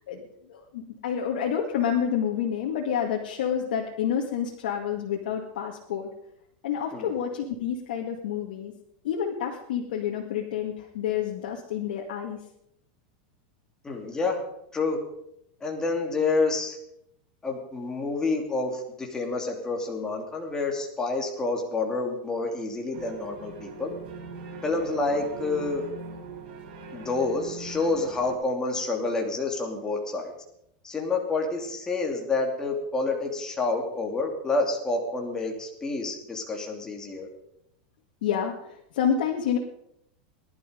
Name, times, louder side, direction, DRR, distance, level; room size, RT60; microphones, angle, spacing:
voice 1, 0.5-6.1 6.6-8.7 9.0-12.4 38.2-39.6, left 8 dB, 80° left, 0 dB, 2.1 m, -29 dB
voice 2, 13.8-14.4 14.7-15.0 15.6-16.8 17.4-23.9 24.6-25.8 26.9-30.3 30.8-37.3, left 3 dB, 15° left, 1 dB, 2.9 m, -28 dB
sound 1, 22.9-28.3, right 4 dB, 75° right, 6.4 m, -41 dB
20.0 x 11.5 x 5.2 m, 0.79 s
supercardioid pair, 145°, 5 cm